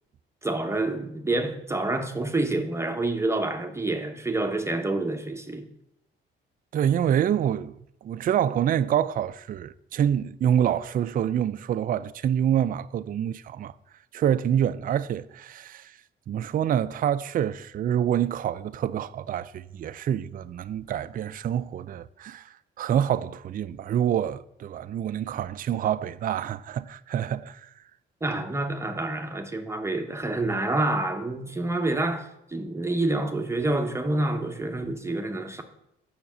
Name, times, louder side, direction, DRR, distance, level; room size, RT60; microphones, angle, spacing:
voice 1, 0.4-5.7 28.2-35.6, right 2 dB, 15° right, 0.9 m, -28 dB
voice 2, 6.7-7.8 8.0-13.7 14.1-15.9 16.3-22.5 22.8-27.7, right 9 dB, 45° right, 0.4 m, -26 dB
6.9 x 5.9 x 7.3 m
cardioid pair, 90°, 20 cm